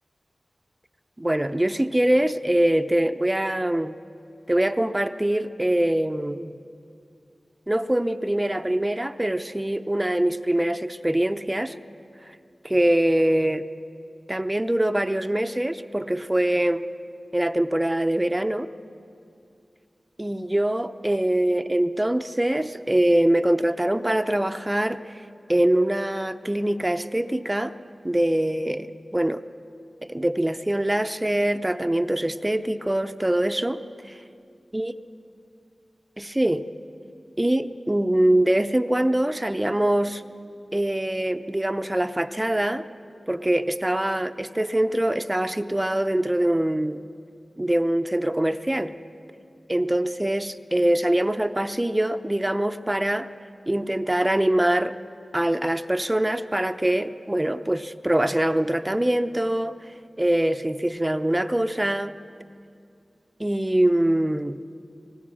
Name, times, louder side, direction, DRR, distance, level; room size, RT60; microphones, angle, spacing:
voice 1, 1.2-4.0 4.5-6.6 7.7-11.7 12.6-13.7 14.3-16.8 17.3-18.7 20.2-25.2 25.5-27.7 28.0-29.4 30.1-33.8 34.1-34.2 34.7-34.9 36.2-36.6 37.4-40.2 40.7-42.8 43.3-47.0 47.6-48.9 49.7-53.3 53.7-54.9 55.3-59.7 60.2-62.1 63.4-64.6, right 1 dB, 20° right, 10 dB, 0.7 m, -23 dB
24.0 x 19.0 x 6.3 m, 2.5 s
cardioid pair, 45°, 0 cm